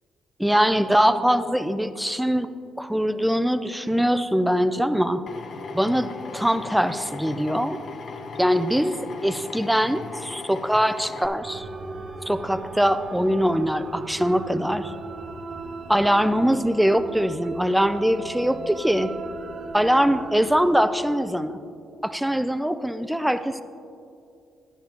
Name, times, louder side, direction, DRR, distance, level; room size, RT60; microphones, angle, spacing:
voice 1, 0.4-2.5 2.8-5.2 5.7-7.8 8.4-8.9 9.2-11.7 12.3-14.9 15.9-19.1 19.7-21.6 22.0-23.6, equal, 5° right, 11 dB, 0.4 m, -22 dB
Drill, 5.3-11.3, left 4 dB, 60° left, 0.8 m, -38 dB
sound 1, 11.4-20.6, right 3 dB, 50° right, 0.7 m, -37 dB
11.5 x 10.5 x 2.9 m, 2.5 s
cardioid pair, 90°, 0 cm